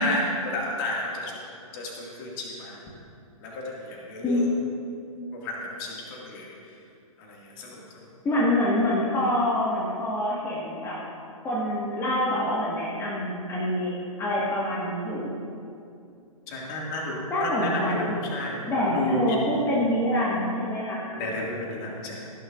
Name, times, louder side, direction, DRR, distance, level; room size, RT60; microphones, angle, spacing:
voice 1, 0.0-1.4 1.7-2.8 3.4-4.4 5.3-6.5 7.2-8.0 16.5-19.6 21.2-22.3, left 1 dB, 35° left, -3 dB, 2.3 m, -32 dB
voice 2, 4.2-4.8 8.2-11.0 11.4-13.9 14.2-15.4 17.3-18.2 18.7-21.1, left 1 dB, 15° left, -7 dB, 1.8 m, -26 dB
17.0 x 10.5 x 2.6 m, 2.5 s
figure-of-eight pair, 120°, 18 cm